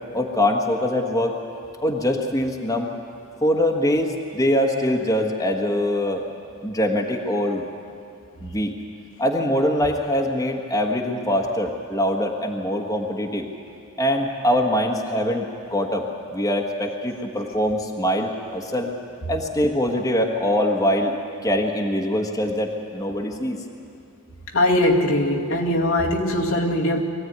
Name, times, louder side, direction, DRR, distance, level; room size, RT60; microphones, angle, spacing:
voice 1, 0.1-1.4 1.8-2.9 3.4-6.3 6.6-7.7 8.4-8.8 9.2-13.5 14.0-15.4 15.7-18.9 19.3-21.1 21.4-23.6, left 1 dB, 15° left, 1 dB, 1.5 m, -23 dB
voice 2, 24.5-27.0, left 1 dB, 80° left, -1 dB, 2.2 m, -20 dB
22.5 x 15.5 x 9.5 m, 2.6 s
head